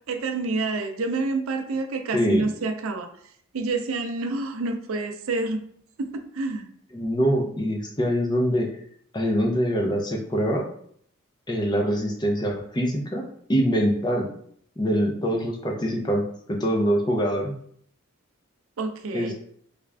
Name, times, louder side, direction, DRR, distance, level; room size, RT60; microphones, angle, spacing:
voice 1, 0.1-3.1 3.5-5.6 6.0-6.7 18.8-19.3, right 3 dB, 85° right, 6 dB, 0.5 m, -28 dB
voice 2, 2.1-2.5 6.9-8.7 9.1-10.6 11.5-13.2 13.5-14.3 14.8-17.5 19.1-19.3, equal, 20° left, 1 dB, 0.5 m, -24 dB
3.4 x 2.4 x 3.3 m, 0.64 s
head